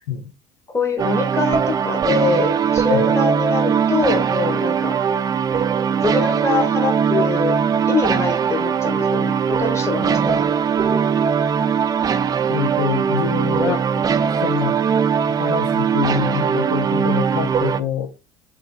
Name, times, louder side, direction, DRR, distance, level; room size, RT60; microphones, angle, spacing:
voice 1, 0.7-5.0 6.0-7.6 7.9-10.5, left 4 dB, 20° left, 1.1 m, -24 dB
sound 1, 1.0-17.8, right 7 dB, 25° right, 0.4 m, -20 dB
voice 2, 12.5-14.1 14.4-14.8 15.3-18.1, left 7 dB, 90° left, 0.8 m, -25 dB
3.4 x 3.0 x 3.8 m
supercardioid pair, 90°, 15 cm